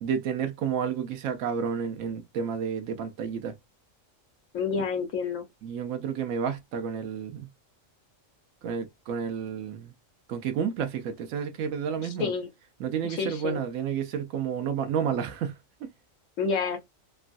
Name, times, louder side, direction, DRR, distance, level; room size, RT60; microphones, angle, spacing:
voice 1, 0.0-3.5 4.7-4.8 5.6-7.5 8.6-9.9 10.3-12.3 12.8-15.6, right 7 dB, 85° right, 1.1 m, -30 dB
voice 2, 4.5-5.5 12.0-12.5 13.1-13.6 16.4-16.8, left 5 dB, 70° left, 1.0 m, -29 dB
3.0 x 2.2 x 2.5 m
omnidirectional pair, 1.4 m